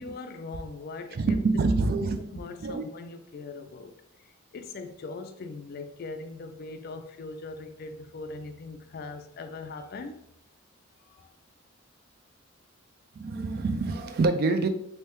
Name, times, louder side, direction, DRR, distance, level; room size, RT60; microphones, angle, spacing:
voice 1, 0.0-1.7 2.0-10.2 10.9-11.3, left 3 dB, 45° left, 0.3 m, -41 dB
voice 2, 1.1-2.2 2.6-2.8 13.2-14.7, right 3 dB, 45° right, 0.3 m, -26 dB
3.3 x 2.7 x 3.0 m
head